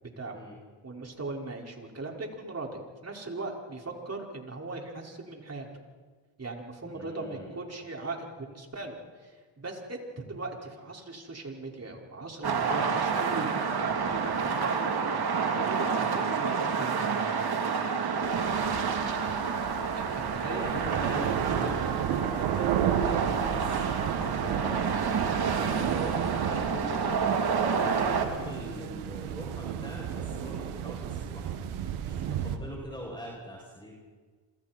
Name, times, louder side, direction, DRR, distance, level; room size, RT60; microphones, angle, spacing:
voice 1, 0.0-0.4 0.8-5.7 6.4-15.2 15.5-17.2 20.0-20.6, right 3 dB, 30° right, 0 dB, 5.7 m, -38 dB
voice 2, 6.8-7.5 18.6-18.8 20.5-21.9 22.2-25.0 25.6-27.0 27.8-31.6 32.0-33.9, equal, 10° left, -3 dB, 7.8 m, -43 dB
sound 1, 12.4-28.3, right 5 dB, 50° right, 3.6 m, -29 dB
sound 2, 18.2-32.6, right 9 dB, 75° right, 2.2 m, -33 dB
27.5 x 27.5 x 4.6 m, 1.4 s
supercardioid pair, 60°, 50 cm